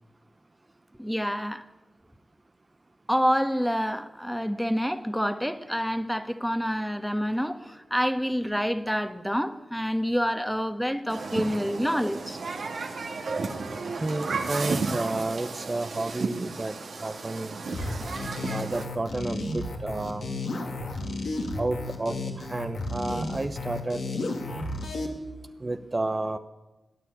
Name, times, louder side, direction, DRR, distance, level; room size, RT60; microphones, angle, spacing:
voice 1, 1.0-1.6 3.1-12.4, equal, ahead, 9 dB, 1.4 m, -27 dB
Human group actions, 11.1-18.8, right 4 dB, 75° right, 2.0 m, -33 dB
voice 2, 14.0-16.8 17.0-17.6 18.5-20.3 21.6-24.1 25.6-26.4, right 2 dB, 35° right, 8 dB, 0.8 m, -31 dB
sound 1, 17.7-25.1, left 2 dB, 75° left, 2.6 m, -33 dB
17.5 x 10.0 x 8.3 m, 1.1 s
cardioid pair, 40°, 0 cm